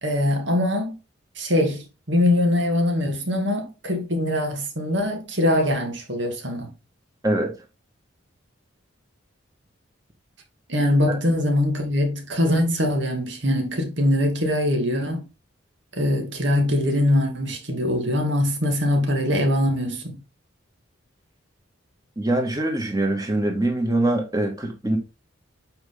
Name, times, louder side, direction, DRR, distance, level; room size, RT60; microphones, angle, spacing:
voice 1, 0.0-0.9 1.4-6.7 10.7-15.2 15.9-20.2, left 1 dB, 65° right, 2.2 m, -22 dB
voice 2, 22.2-25.0, right 1 dB, 20° right, 1.7 m, -23 dB
7.9 x 4.9 x 3.8 m
head